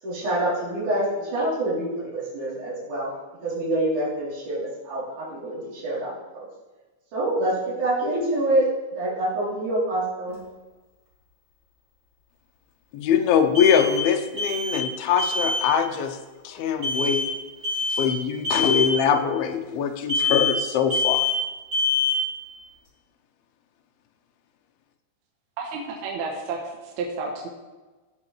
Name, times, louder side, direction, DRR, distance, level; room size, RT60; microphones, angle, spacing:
voice 1, 0.0-3.1 3.4-6.5 7.1-7.5 7.8-8.6 9.0-10.4, right 1 dB, 50° right, -9 dB, 4.9 m, -26 dB
sound 1, 10.3-10.4 13.5-14.1 14.4-14.9 15.2-15.7 16.8-17.3 17.6-18.1 18.4-18.9 20.1-20.6 20.9-21.5 21.7-22.3, left 4 dB, 15° right, 3.4 m, -24 dB
voice 2, 12.9-16.2 16.4-17.2 17.9-21.3, left 7 dB, 80° left, 5 dB, 2.6 m, -23 dB
voice 3, 25.6-27.5, right 4 dB, 80° right, -1 dB, 3.0 m, -31 dB
16.0 x 7.3 x 3.3 m, 1.2 s
omnidirectional pair, 4.5 m